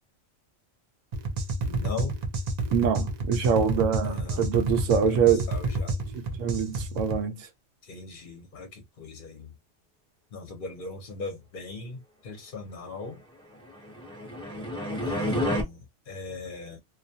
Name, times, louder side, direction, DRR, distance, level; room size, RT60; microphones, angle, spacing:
sound 1, 1.1-7.2, right 2 dB, 50° right, 0.5 m, -30 dB
voice 1, 1.6-2.2 4.0-4.5 5.1-6.0 7.8-9.5 10.3-13.2 15.0-16.8, left 3 dB, 50° left, 0.8 m, -39 dB
voice 2, 2.7-5.5 6.1-7.5, right 7 dB, 80° right, 0.9 m, -25 dB
sound 2, 13.7-15.6, left 1 dB, 5° left, 0.6 m, -30 dB
2.4 x 2.2 x 2.6 m
omnidirectional pair, 1.3 m